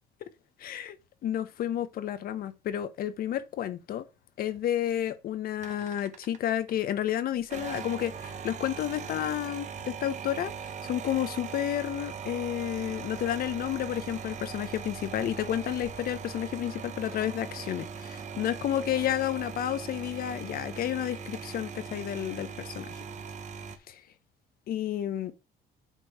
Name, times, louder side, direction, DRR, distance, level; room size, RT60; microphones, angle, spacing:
voice 1, 0.6-1.0 1.2-4.1 4.4-22.9 23.9-24.0 24.7-25.3, left 11 dB, 60° left, 0.8 m, -31 dB
sound 1, 5.6-6.7 7.4-23.8, right 6 dB, 45° right, 1.0 m, -40 dB
8.2 x 3.0 x 5.5 m
cardioid pair, 110°, 17 cm